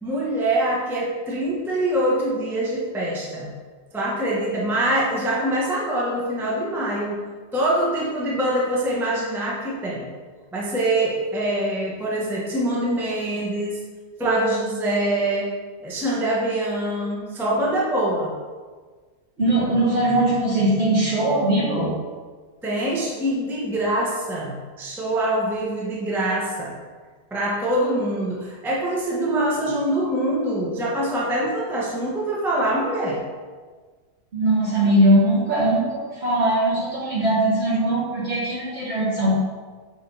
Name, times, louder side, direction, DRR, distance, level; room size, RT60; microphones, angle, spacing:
voice 1, 0.0-3.5 3.9-7.2 7.5-10.1 10.5-13.8 14.2-15.5 15.8-18.3 22.6-26.8 27.3-33.2, right 1 dB, ahead, -5 dB, 1.1 m, -24 dB
voice 2, 19.4-21.9 34.3-39.4, right 1 dB, 45° right, -5 dB, 2.2 m, -20 dB
8.3 x 3.7 x 5.6 m, 1.4 s
omnidirectional pair, 1.7 m